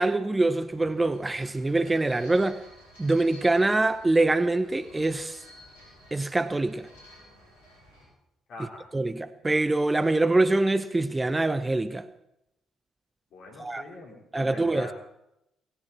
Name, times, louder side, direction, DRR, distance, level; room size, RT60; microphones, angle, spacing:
voice 1, 0.0-2.6 3.0-5.4 6.1-6.9 8.9-12.1 13.6-13.8 14.3-14.9, right 2 dB, 20° right, 0.8 m, -24 dB
rock on concrete stairs and metal railing, 0.6-8.1, left 1 dB, 75° left, 7.3 m, -53 dB
voice 2, 8.5-8.9 13.3-14.9, left 2 dB, 55° left, 4.7 m, -43 dB
18.5 x 16.5 x 4.3 m
figure-of-eight pair, 45°, 0 cm